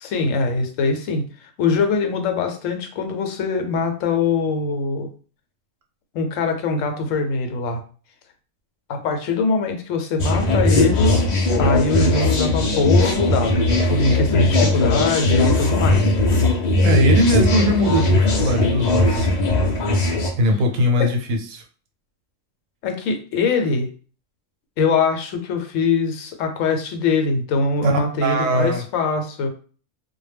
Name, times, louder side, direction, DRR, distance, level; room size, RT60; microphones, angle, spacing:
voice 1, 0.0-5.1 6.1-7.8 8.9-11.2 11.6-16.2 21.0-21.1 22.8-23.9 24.8-29.5, left 4 dB, 80° left, 6 dB, 0.9 m, -22 dB
sound 1, 10.2-20.3, left 2 dB, 60° left, 0.4 m, -19 dB
voice 2, 16.8-19.3 20.4-21.6 27.8-28.8, equal, 85° right, 3 dB, 1.0 m, -20 dB
2.2 x 2.0 x 3.2 m, 0.40 s
omnidirectional pair, 1.3 m